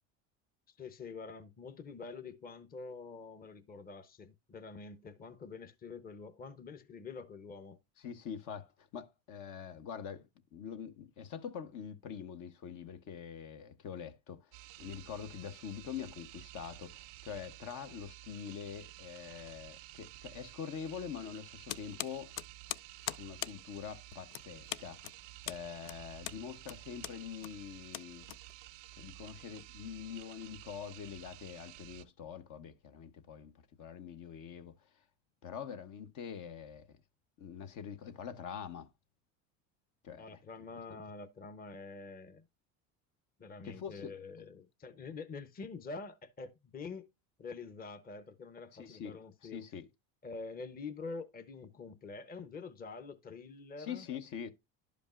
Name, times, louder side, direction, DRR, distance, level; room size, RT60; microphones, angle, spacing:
voice 1, 0.8-7.8 40.2-42.4 43.4-47.1 47.4-49.6 50.2-54.0, left 4 dB, 25° left, 0.8 m, -46 dB
voice 2, 8.0-10.2 10.5-22.3 23.1-25.0 25.4-28.3 28.9-33.5 33.8-35.0 35.4-37.0 37.4-38.9 40.0-40.4 40.9-41.0 43.6-44.1 44.4-44.5 48.7-49.9 53.8-54.5, left 7 dB, 55° left, 1.0 m, -44 dB
sound 1, 14.5-32.0, right 18 dB, 85° right, 0.6 m, -52 dB
sound 2, 21.7-28.9, left 15 dB, 75° left, 0.5 m, -43 dB
11.5 x 5.2 x 2.4 m
supercardioid pair, 95°, 36 cm